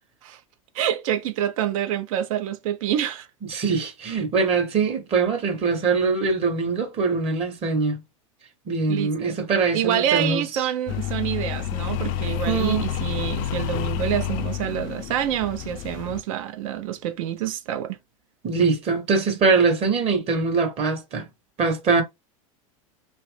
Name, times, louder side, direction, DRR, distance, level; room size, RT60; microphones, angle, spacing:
voice 1, 0.7-3.3 8.9-9.4 9.7-18.0, right 11 dB, 70° right, 0.7 m, -27 dB
voice 2, 3.4-8.0 8.7-10.6 12.3-12.9 18.4-21.3 21.6-22.0, right 4 dB, 35° right, 1.0 m, -23 dB
sound 1, 10.9-16.2, left 11 dB, 50° left, 0.4 m, -29 dB
3.0 x 2.5 x 3.3 m
supercardioid pair, 120°, 18 cm